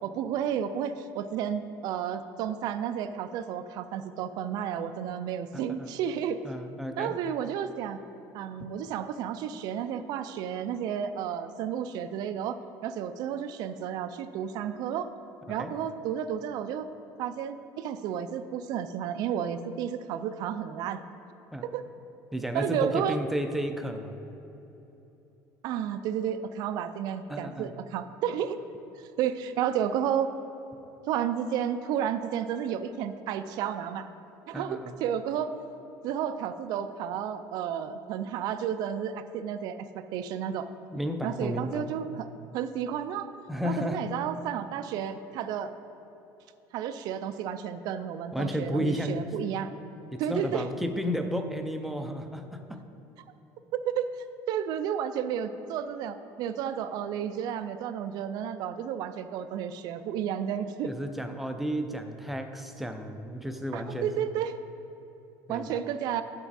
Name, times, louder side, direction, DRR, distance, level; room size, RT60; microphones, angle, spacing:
voice 1, 0.0-6.4 7.0-8.0 8.3-15.1 15.5-16.9 17.2-21.0 21.7-21.8 22.5-23.2 25.6-28.6 29.0-30.3 31.1-34.1 34.5-35.6 36.0-40.7 41.2-42.3 42.5-43.3 43.6-45.7 46.7-49.7 50.2-50.7 53.9-54.1 54.5-60.9 63.7-64.6 65.5-66.2, right 9 dB, 60° right, 10 dB, 0.4 m, -32 dB
voice 2, 5.5-5.9 6.4-7.2 15.5-15.7 21.5-21.7 22.3-24.1 27.3-27.7 34.5-34.9 40.9-41.9 43.5-44.0 48.3-49.2 50.1-52.8 60.9-64.1 65.5-65.8, equal, ahead, 5 dB, 0.5 m, -32 dB
10.0 x 5.8 x 4.1 m, 3.0 s
cardioid pair, 145°, 8 cm